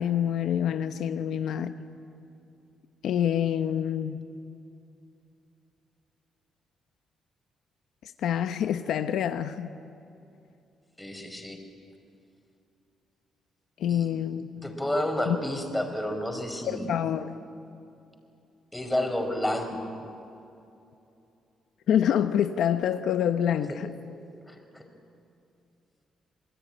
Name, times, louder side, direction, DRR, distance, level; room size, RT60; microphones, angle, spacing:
voice 1, 0.0-1.7 3.0-4.2 8.0-9.7 13.8-14.5 15.3-15.4 16.7-17.3 21.9-23.9, left 9 dB, 75° left, 8 dB, 1.0 m, -26 dB
voice 2, 11.0-11.6 13.9-14.1 14.6-16.9 18.7-20.0 23.7-23.8 24.5-24.8, left 1 dB, 10° left, 5 dB, 4.9 m, -30 dB
27.0 x 20.0 x 9.9 m, 2.7 s
cardioid pair, 90°, 0 cm